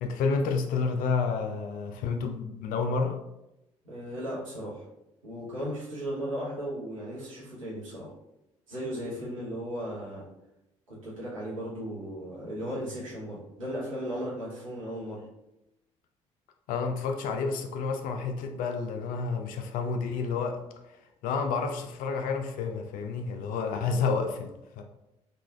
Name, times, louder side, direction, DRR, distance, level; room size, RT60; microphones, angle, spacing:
voice 1, 0.0-3.1 16.7-20.6 21.2-24.8, left 4 dB, 55° left, 5 dB, 0.4 m, -30 dB
voice 2, 3.8-4.8 5.2-8.1 8.7-10.3 10.9-15.2, equal, 85° right, -7 dB, 0.9 m, -36 dB
3.1 x 2.4 x 2.2 m, 0.90 s
figure-of-eight pair, 45°, 17 cm